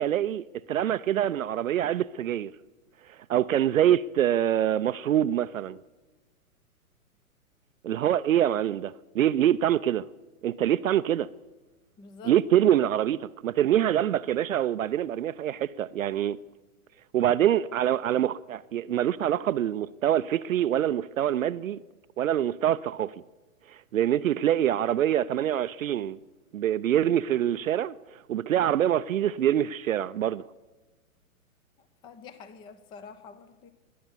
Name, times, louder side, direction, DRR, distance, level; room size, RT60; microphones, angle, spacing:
voice 1, 0.0-2.5 3.3-5.8 7.8-10.0 10.4-11.3 12.3-16.4 17.1-21.8 22.2-23.1 23.9-26.2 26.5-27.9 28.3-30.4, right 11 dB, 65° right, 0.5 m, -25 dB
voice 2, 12.0-12.3 12.6-12.7 31.8-33.7, left 5 dB, 10° left, 0.5 m, -47 dB
20.5 x 9.4 x 7.1 m
figure-of-eight pair, 115°, 44 cm